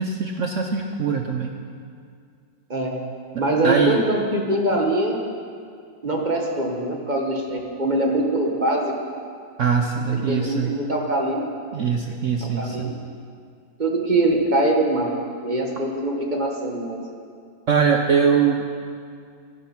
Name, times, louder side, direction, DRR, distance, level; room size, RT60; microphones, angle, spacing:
voice 1, 0.0-1.6 3.6-4.0 9.6-10.7 11.7-12.9 17.7-18.6, right 6 dB, 60° right, 3 dB, 0.8 m, -22 dB
voice 2, 3.4-5.2 6.0-8.9 10.1-11.4 12.4-12.9 13.8-15.1 15.4-17.0, right 1 dB, 25° right, 0 dB, 1.3 m, -23 dB
12.5 x 11.0 x 5.9 m, 2.3 s
omnidirectional pair, 2.0 m